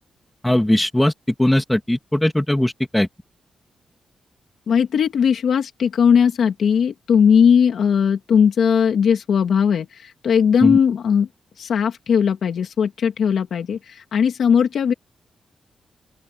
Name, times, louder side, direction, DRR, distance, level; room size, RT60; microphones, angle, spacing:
voice 1, 0.4-1.1 1.4-3.1 10.6-10.8, left 1 dB, 5° left, 2.1 m, -19 dB
voice 2, 4.7-11.3 11.6-14.9, left 7 dB, 65° left, 2.3 m, -18 dB
open air
wide cardioid pair, 175°, 0 cm